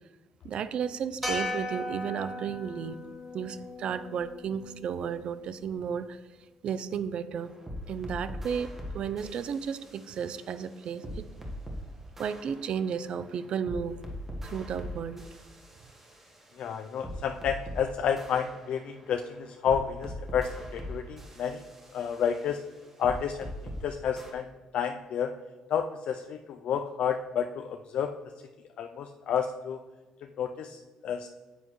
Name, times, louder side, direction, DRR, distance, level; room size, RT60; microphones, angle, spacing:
voice 1, 0.4-3.0 3.3-6.2 6.6-7.5 7.9-11.2 12.2-14.0 14.4-15.2, right 7 dB, 55° right, 14 dB, 0.5 m, -33 dB
sound 1, 1.2-5.6, left 1 dB, ahead, 2.7 m, -37 dB
sound 2, 7.4-11.8 12.2-17.8 18.2-23.8 24.2-24.3, equal, 15° right, 1.3 m, -42 dB
voice 2, 16.6-21.6 21.9-22.6 23.0-23.5 23.8-24.5 24.7-25.3 25.7-28.1 28.8-29.8 30.4-31.3, left 7 dB, 65° left, 6 dB, 0.4 m, -30 dB
9.4 x 7.9 x 3.1 m, 1.2 s
cardioid pair, 140°, 2 cm